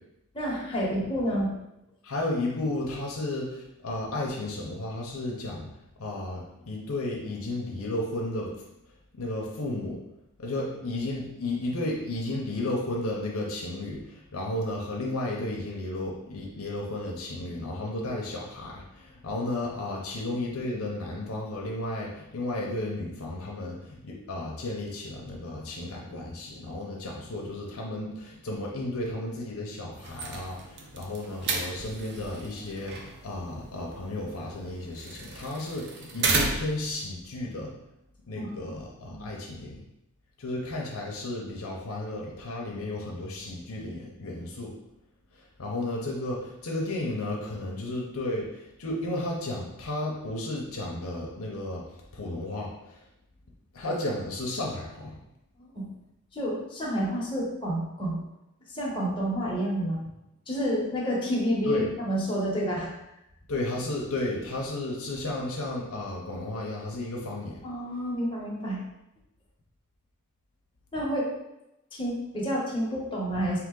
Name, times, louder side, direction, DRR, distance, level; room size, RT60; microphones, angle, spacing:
voice 1, 0.3-1.5 39.0-39.3 55.7-55.8 56.3-58.2 58.7-60.0 60.5-62.9 67.6-68.8 70.9-71.3 71.9-73.6, equal, 25° left, -5 dB, 1.1 m, -29 dB
voice 2, 2.0-5.7 6.0-8.7 9.2-10.0 10.4-37.8 38.3-39.8 40.4-44.7 45.3-53.0 53.7-55.2 61.6-61.9 63.5-67.6, left 1 dB, 70° left, -2 dB, 0.8 m, -33 dB
sound 1, 29.9-36.9, right 3 dB, 55° right, 0.5 m, -34 dB
3.8 x 2.9 x 3.8 m, 0.88 s
head